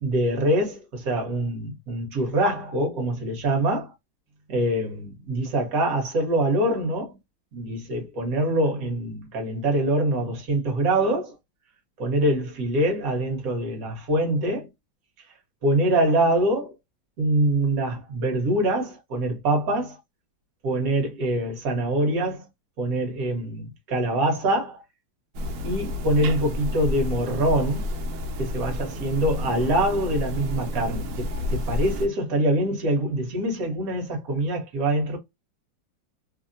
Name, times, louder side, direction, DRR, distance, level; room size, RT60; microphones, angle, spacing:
voice 1, 0.0-3.9 4.5-7.2 7.5-11.3 12.0-14.7 15.6-16.7 17.2-20.0 20.6-22.4 22.8-24.8 25.6-27.8 28.4-35.2, right 1 dB, 55° right, 1.4 m, -24 dB
sound 1, 25.3-32.1, left 1 dB, 80° right, 1.3 m, -30 dB
3.2 x 2.1 x 2.5 m
omnidirectional pair, 2.1 m